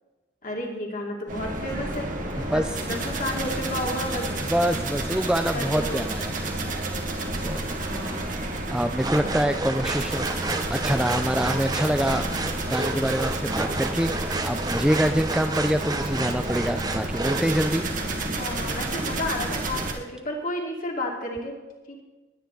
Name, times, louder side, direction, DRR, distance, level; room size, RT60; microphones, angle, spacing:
voice 1, 0.4-2.1 2.3-4.3 5.4-6.0 7.8-8.4 13.6-14.1 18.0-18.1 18.3-21.6 21.9-22.0, left 1 dB, 45° left, -1 dB, 2.6 m, -32 dB
sound 1, 1.3-19.9, right 2 dB, 40° right, 1.7 m, -30 dB
voice 2, 4.5-6.8 7.4-7.6 8.3-12.3 12.7-17.8, equal, 5° right, 6 dB, 0.4 m, -26 dB
sound 2, 9.0-17.8, right 2 dB, 20° right, 0.8 m, -31 dB
20.5 x 9.5 x 3.9 m, 1.1 s
head